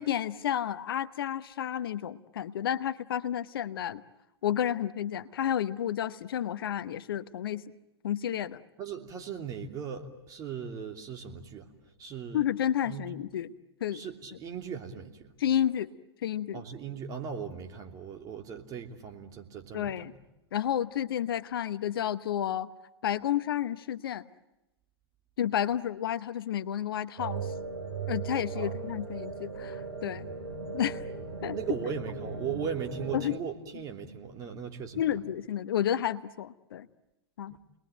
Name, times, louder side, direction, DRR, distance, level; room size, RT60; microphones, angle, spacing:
voice 1, 0.0-4.0 4.4-7.6 8.0-8.6 12.3-13.5 13.8-14.0 15.4-15.9 16.2-16.6 19.7-20.1 20.5-22.7 23.0-24.3 25.4-27.5 28.1-30.2 30.7-31.0 31.4-31.6 33.1-33.4 35.0-36.9 37.4-37.6, left 10 dB, 55° left, 13 dB, 1.0 m, -31 dB
voice 2, 8.8-11.7 12.0-12.4 12.8-13.1 13.9-15.3 16.5-20.2 28.5-28.8 31.5-35.0 37.5-37.6, right 7 dB, 25° right, 4 dB, 3.0 m, -38 dB
sound 1, 27.2-33.2, right 5 dB, 65° right, 6.8 m, -37 dB
29.5 x 21.5 x 9.1 m, 0.97 s
figure-of-eight pair, 110°, 14 cm